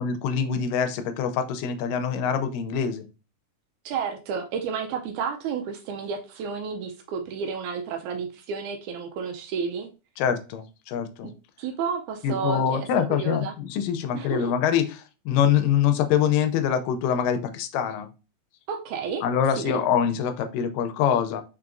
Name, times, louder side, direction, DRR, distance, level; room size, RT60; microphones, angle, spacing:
voice 1, 0.0-3.1 10.2-11.3 12.2-15.0 15.3-18.1 19.2-21.4, left 8 dB, 85° left, 9 dB, 2.2 m, -24 dB
voice 2, 3.9-9.9 11.2-13.5 14.1-14.5 18.7-19.2 19.5-19.8, right 6 dB, 80° right, 5 dB, 1.8 m, -31 dB
4.6 x 4.5 x 2.5 m, 0.31 s
omnidirectional pair, 3.9 m